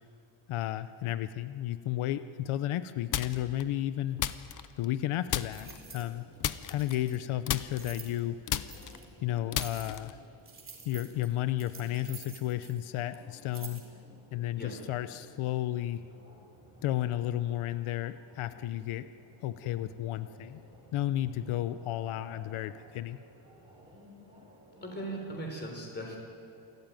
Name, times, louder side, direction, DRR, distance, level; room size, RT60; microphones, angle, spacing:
voice 1, 0.5-4.2 4.8-6.2 6.7-8.4 9.2-10.2 10.9-13.8 14.3-16.0 16.8-19.1 19.4-20.6 20.9-23.2, left 13 dB, 90° left, 12 dB, 0.8 m, -33 dB
sound 1, 3.1-3.6 4.2-5.0 5.3-5.8 6.4-7.2 7.5-10.2, left 10 dB, 40° left, 0.7 m, -34 dB
sound 2, 5.2-6.1 6.6-7.2 7.7-8.2 8.7-9.0 9.6-10.1 10.5-12.9 13.1-13.2 13.5-13.9, right 5 dB, 25° right, 3.1 m, -49 dB
sound 3, 5.5-25.4, equal, 10° right, 4.6 m, -56 dB
voice 2, 24.8-26.2, right 1 dB, 20° left, 2 dB, 4.2 m, -38 dB
27.5 x 14.5 x 9.1 m, 2.5 s
cardioid pair, 180°, 48 cm